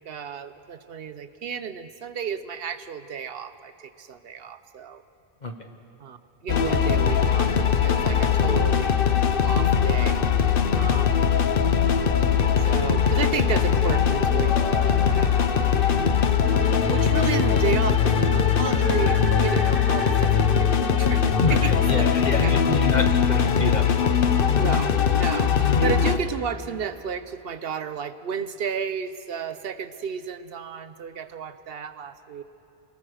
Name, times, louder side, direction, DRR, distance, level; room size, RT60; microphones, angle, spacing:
voice 1, 0.1-5.0 6.0-6.2 6.4-9.0 9.4-10.2 10.7-11.1 12.6-16.1 16.6-21.7 22.4-22.5 24.6-32.4, right 7 dB, 65° right, 12 dB, 1.0 m, -32 dB
sound 1, 6.5-26.2, left 7 dB, 60° left, 1.0 m, -21 dB
sound 2, 14.4-20.2, equal, 15° left, 6.1 m, -38 dB
voice 2, 21.4-23.8, left 3 dB, 45° left, 5 dB, 1.3 m, -27 dB
27.5 x 19.5 x 6.4 m, 2.8 s
omnidirectional pair, 1.1 m